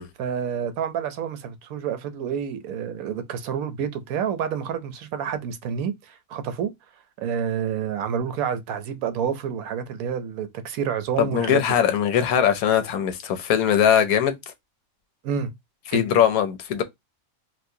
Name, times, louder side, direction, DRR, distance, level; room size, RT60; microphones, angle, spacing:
voice 1, 0.2-6.7 7.2-11.6 15.2-15.5 15.9-16.0, right 8 dB, 80° right, 1.1 m, -28 dB
voice 2, 11.2-14.3 15.9-16.8, left 9 dB, 90° left, 1.2 m, -21 dB
4.3 x 2.2 x 2.7 m
omnidirectional pair, 1.5 m